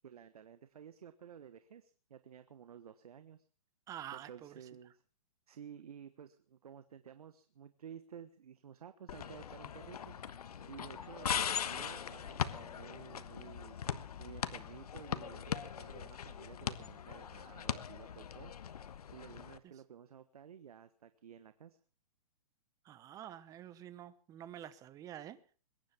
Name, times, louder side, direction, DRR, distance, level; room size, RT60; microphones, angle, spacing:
voice 1, 0.0-3.4 4.1-4.9 5.5-10.4 10.7-13.8 14.2-18.5 19.1-21.8, right 8 dB, 80° right, 1.3 m, -53 dB
voice 2, 3.9-4.5 19.6-19.7 22.8-25.4, right 11 dB, 20° right, 1.0 m, -48 dB
sound 1, 9.1-19.6, left 8 dB, 80° left, 1.3 m, -40 dB
21.5 x 10.5 x 5.9 m
hypercardioid pair, 150°, 19 cm